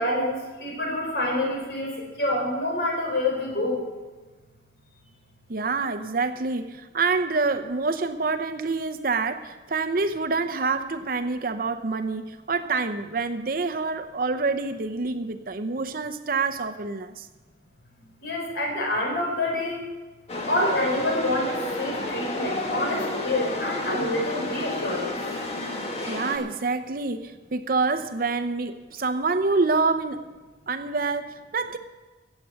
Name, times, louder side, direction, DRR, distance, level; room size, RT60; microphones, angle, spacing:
voice 1, 0.0-3.8 18.2-19.8 20.5-25.1, left 1 dB, 70° left, 0 dB, 4.5 m, -27 dB
voice 2, 5.5-17.3 26.1-30.2 30.7-31.8, right 4 dB, 55° right, 8 dB, 0.7 m, -27 dB
Chatter / Subway metro underground, 20.3-26.4, left 2 dB, 35° left, 1.6 m, -30 dB
14.5 x 8.4 x 7.6 m, 1.2 s
head